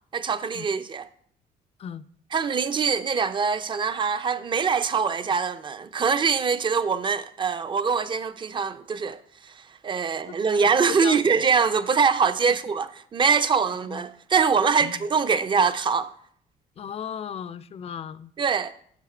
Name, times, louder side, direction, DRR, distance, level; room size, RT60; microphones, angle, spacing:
voice 1, 0.1-1.1 2.3-16.1 18.4-18.7, right 5 dB, 30° right, 0.4 m, -23 dB
voice 2, 10.9-11.2 12.5-12.6 13.8-14.0 14.8-15.0 16.8-18.3, left 8 dB, 35° left, 0.4 m, -36 dB
7.4 x 5.5 x 4.9 m
cardioid pair, 110°, 17 cm